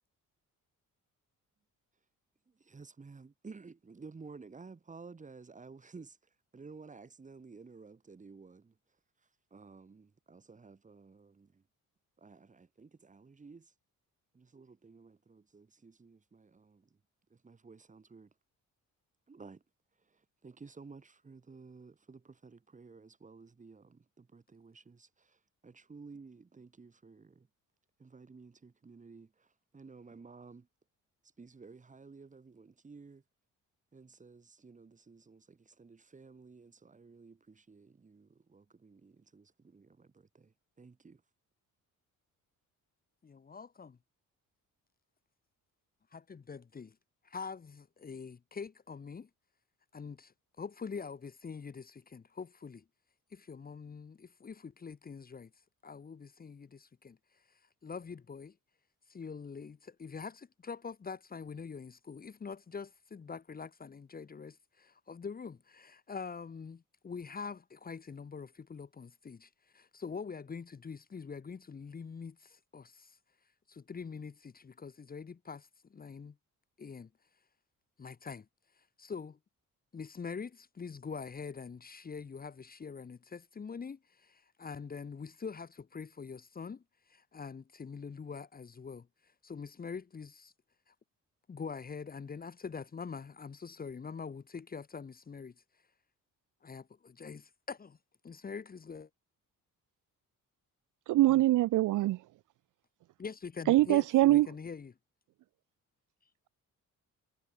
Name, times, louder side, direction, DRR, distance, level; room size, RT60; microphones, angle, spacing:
voice 1, 2.5-8.8 9.2-11.6 12.2-13.7 14.3-17.0 17.3-18.3 19.3-19.6 20.0-27.5 28.0-30.7 31.4-33.2 33.9-41.2, right 4 dB, 25° right, 3.0 m, -54 dB
voice 2, 43.2-44.0 46.1-46.9 47.2-49.3 49.9-52.8 53.3-55.5 55.8-57.2 57.8-58.6 59.1-73.2 73.7-76.4 76.8-77.1 78.0-78.5 79.0-79.4 79.9-89.1 89.4-90.5 90.9-91.0 91.5-95.5 96.6-98.0 98.2-99.1 103.2-104.9, left 5 dB, 25° left, 1.4 m, -44 dB
voice 3, 101.1-102.2 103.7-104.5, right 16 dB, 65° right, 0.5 m, -24 dB
cardioid pair, 155°, 33 cm